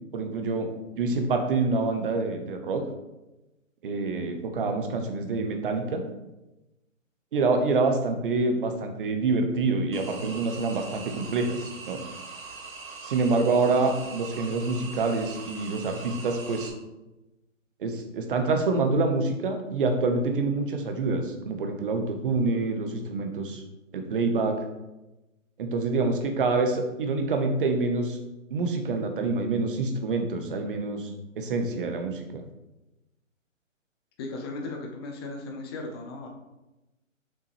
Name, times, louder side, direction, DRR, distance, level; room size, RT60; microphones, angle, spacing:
voice 1, 0.1-0.7 1.0-2.8 3.8-6.0 7.3-12.0 13.0-16.7 17.8-23.6 23.9-24.6 25.6-28.2 28.5-32.4, right 3 dB, 40° right, 5 dB, 1.2 m, -26 dB
sound 1, 9.9-16.7, right 4 dB, 90° right, 2.2 m, -42 dB
voice 2, 34.2-36.3, left 2 dB, 20° left, 1 dB, 0.8 m, -36 dB
7.0 x 5.9 x 3.3 m, 1.0 s
hypercardioid pair, 150°, 39 cm